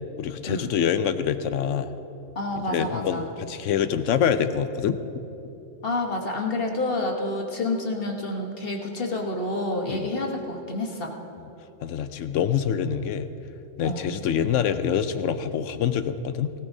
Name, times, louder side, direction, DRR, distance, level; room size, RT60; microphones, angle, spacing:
voice 1, 0.2-1.9 2.7-5.0 9.9-10.1 11.8-13.3 13.8-16.5, left 8 dB, 75° left, 11 dB, 0.9 m, -25 dB
voice 2, 2.3-3.3 5.8-11.2 13.8-14.0, left 2 dB, 50° left, 1 dB, 1.4 m, -28 dB
17.5 x 17.0 x 2.7 m, 2.9 s
omnidirectional pair, 1.3 m